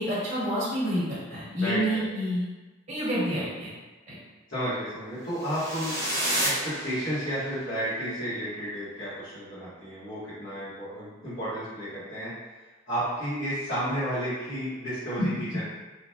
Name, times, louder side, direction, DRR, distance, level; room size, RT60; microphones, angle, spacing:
voice 1, 0.0-2.4 2.9-3.7 4.1-4.2 15.2-15.3, equal, 35° right, -9 dB, 1.0 m, -28 dB
voice 2, 1.6-2.0 4.5-5.9 6.4-12.3 12.9-15.6, equal, 55° left, -17 dB, 1.3 m, -32 dB
sound 1, 5.4-7.5, equal, 15° left, 0.6 m, -30 dB
3.0 x 2.4 x 2.3 m, 1.2 s
head